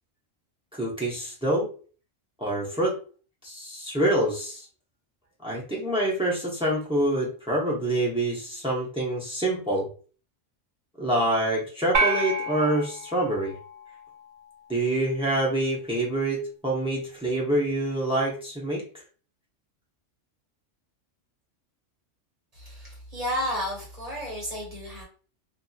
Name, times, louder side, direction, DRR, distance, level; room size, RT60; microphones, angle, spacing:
voice 1, 0.7-1.7 2.4-3.0 3.4-4.6 5.4-9.9 11.0-13.5 14.7-18.8, right 1 dB, 5° right, -3 dB, 0.5 m, -26 dB
sound 1, 11.9-14.4, right 3 dB, 50° right, 0.6 m, -29 dB
voice 2, 22.5-25.0, equal, 30° right, -4 dB, 1.3 m, -32 dB
2.7 x 2.6 x 2.2 m, 0.39 s
omnidirectional pair, 1.3 m